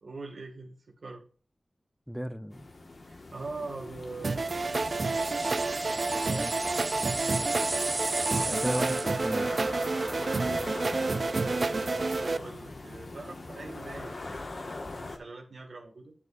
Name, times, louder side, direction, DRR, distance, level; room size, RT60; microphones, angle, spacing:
voice 1, 0.0-1.3 3.1-4.3 11.3-14.2 14.9-16.1, right 3 dB, 85° right, 1.9 m, -42 dB
voice 2, 2.1-2.6 6.2-6.7 8.4-9.5, equal, ahead, 0.6 m, -35 dB
sound 1, 2.5-15.2, left 2 dB, 65° left, 1.5 m, -41 dB
sound 2, 4.2-12.4, right 3 dB, 65° right, 0.4 m, -29 dB
sound 3, 4.5-9.4, right 2 dB, 40° right, 0.8 m, -35 dB
11.0 x 8.2 x 2.5 m
wide cardioid pair, 70°, 0 cm